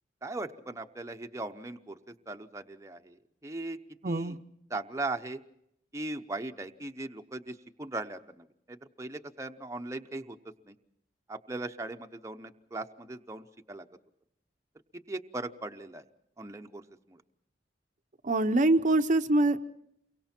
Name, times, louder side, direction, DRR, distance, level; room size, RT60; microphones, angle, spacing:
voice 1, 0.2-2.0 2.3-3.8 4.0-4.4 4.7-5.4 5.9-10.4 10.7-10.8 11.3-13.9 14.9-16.0 16.4-17.2, right 2 dB, 15° right, 5 dB, 0.8 m, -39 dB
voice 2, 4.0-4.4 18.2-19.6, right 2 dB, 45° right, 8 dB, 0.8 m, -24 dB
29.0 x 23.5 x 4.4 m, 0.74 s
head